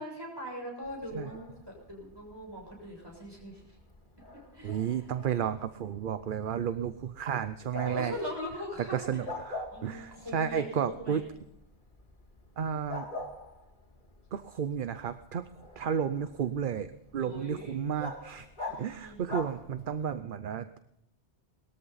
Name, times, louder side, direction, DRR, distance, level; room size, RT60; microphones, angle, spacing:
voice 1, 0.0-3.6 4.5-5.0 6.4-6.5 7.8-9.3 9.7-11.2 17.2-17.8 18.7-19.2, equal, 20° right, -1 dB, 6.7 m, -41 dB
Bark, 0.8-20.2, left 1 dB, 45° left, 2.5 m, -46 dB
voice 2, 4.6-8.1 8.9-11.2 12.6-13.1 14.3-15.4 15.8-18.5 18.8-20.8, right 8 dB, 55° right, 11 dB, 0.8 m, -32 dB
20.5 x 13.5 x 4.1 m, 0.79 s
omnidirectional pair, 1.1 m